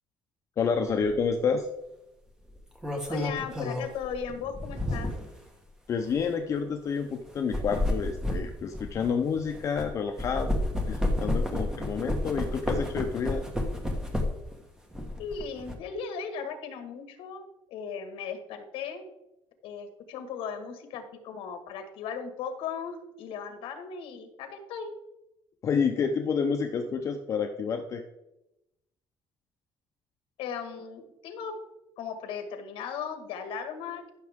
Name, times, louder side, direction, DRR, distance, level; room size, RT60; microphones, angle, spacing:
voice 1, 0.6-1.7 5.9-13.4 25.6-28.0, left 6 dB, 35° left, 4 dB, 0.7 m, -29 dB
sound 1, 1.0-1.2 2.5-5.4 6.0-6.2 7.3-9.9 10.2-14.5 14.9-15.7, left 1 dB, 5° right, 1.3 m, -31 dB
voice 2, 3.1-5.1 15.2-19.0 19.6-24.9 30.4-31.6 32.0-34.1, left 6 dB, 70° left, 7 dB, 1.7 m, -37 dB
14.0 x 6.3 x 3.6 m, 0.90 s
cardioid pair, 180°, 9 cm